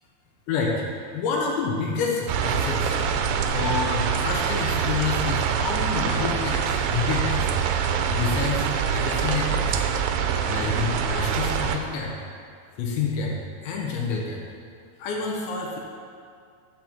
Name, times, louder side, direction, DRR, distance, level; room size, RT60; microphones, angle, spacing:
voice 1, 0.5-0.8 1.1-3.0 3.5-7.5 7.8-9.9 10.5-12.1 12.8-13.4 13.6-14.4 15.0-15.8, left 4 dB, 85° left, -1 dB, 3.4 m, -28 dB
sound 1, 2.3-11.8, right 7 dB, 80° right, 2.7 m, -25 dB
13.0 x 4.5 x 7.3 m, 2.3 s
omnidirectional pair, 5.0 m